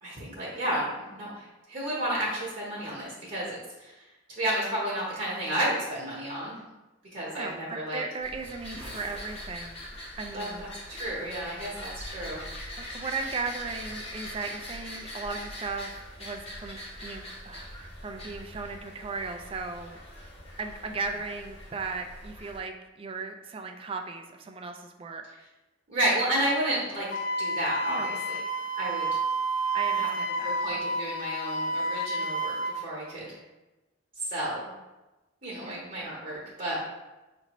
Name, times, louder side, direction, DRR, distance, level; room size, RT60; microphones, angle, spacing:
voice 1, 0.0-4.0 4.4-6.7 7.1-8.0 10.3-12.4 25.9-27.1 27.4-28.4 28.8-29.1 29.9-30.1 30.4-33.4 34.2-34.7 35.4-36.8, right 1 dB, 45° right, -6 dB, 0.9 m, -31 dB
voice 2, 7.3-9.9 10.2-10.7 12.8-20.0 20.6-25.2 27.9-28.2 29.7-30.5 35.6-35.9, right 4 dB, 30° right, 4 dB, 0.3 m, -37 dB
sound 1, 8.2-22.6, left 1 dB, 30° left, 0.8 m, -42 dB
Wind instrument woodwind instrument, 27.1-32.8, right 2 dB, 80° left, 0.4 m, -30 dB
5.3 x 2.5 x 3.0 m, 1.1 s
head